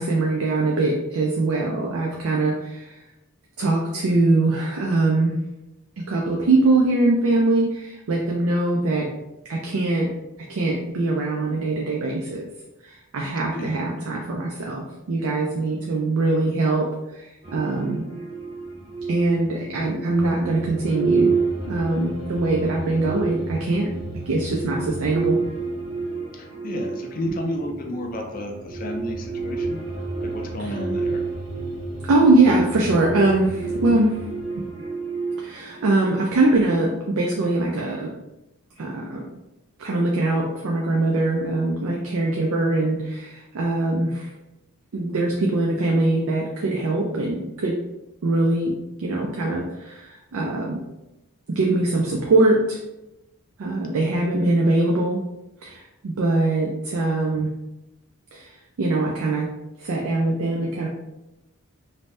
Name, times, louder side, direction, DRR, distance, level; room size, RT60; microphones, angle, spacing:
voice 1, 0.0-2.9 3.6-5.3 6.0-9.1 9.5-10.1 10.5-12.4 12.8-18.1 19.1-21.3 21.7-23.9 24.3-25.4 30.6-30.7 32.1-34.1 35.4-38.1 38.8-39.2 39.8-44.3 44.9-47.8 48.2-48.7 49.0-50.8 51.5-52.8 53.6-55.2 55.6-57.5 58.3-58.5 58.8-59.5 59.8-60.9, right 2 dB, 80° right, -1 dB, 0.4 m, -22 dB
sound 1, 17.4-36.3, right 4 dB, 25° right, 0.6 m, -29 dB
voice 2, 26.3-29.8 30.2-31.2 54.0-54.2 57.3-57.4, left 1 dB, 40° left, 2 dB, 0.4 m, -32 dB
2.7 x 2.0 x 3.3 m, 0.94 s
head